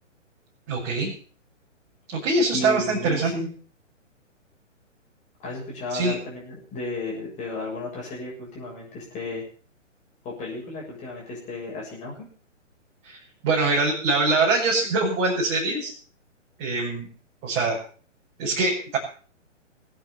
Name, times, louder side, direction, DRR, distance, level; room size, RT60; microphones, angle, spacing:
voice 1, 0.7-1.1 2.1-3.3 5.9-6.2 13.0-13.2 13.4-15.9 16.6-17.1 17.4-17.8 18.4-19.0, right 3 dB, 25° right, -6 dB, 6.4 m, -23 dB
voice 2, 2.5-3.5 5.4-9.4 10.2-12.3, left 2 dB, 20° left, -3 dB, 7.2 m, -34 dB
23.0 x 9.2 x 5.8 m, 0.43 s
figure-of-eight pair, 125°, 38 cm